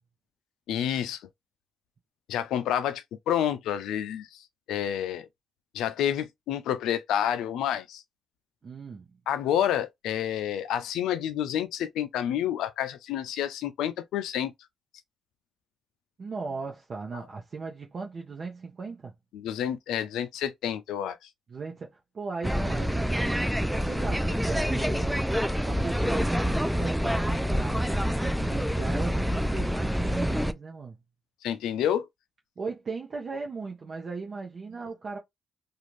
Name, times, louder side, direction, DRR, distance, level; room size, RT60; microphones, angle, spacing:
voice 1, 0.7-1.2 2.3-5.3 5.7-8.0 9.3-14.5 19.3-21.3 31.4-32.1, left 10 dB, 85° left, 0.3 m, -29 dB
voice 2, 8.6-9.1 16.2-19.1 21.5-25.2 25.7-31.0 32.6-35.2, right 4 dB, 45° right, 0.7 m, -37 dB
sound 1, 22.4-30.5, equal, ahead, 0.3 m, -27 dB
2.5 x 2.4 x 2.9 m
cardioid pair, 75°, 0 cm